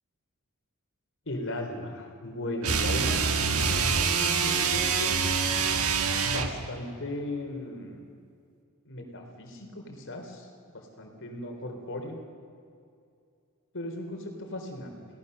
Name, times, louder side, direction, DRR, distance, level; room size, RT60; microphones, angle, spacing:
voice 1, 1.3-3.3 3.6-5.2 6.2-8.1 8.9-12.2 13.7-15.0, left 1 dB, 60° left, 3 dB, 3.7 m, -37 dB
sound 1, 2.6-6.6, right 5 dB, 70° right, 1.6 m, -26 dB
30.0 x 18.0 x 6.7 m, 2.4 s
head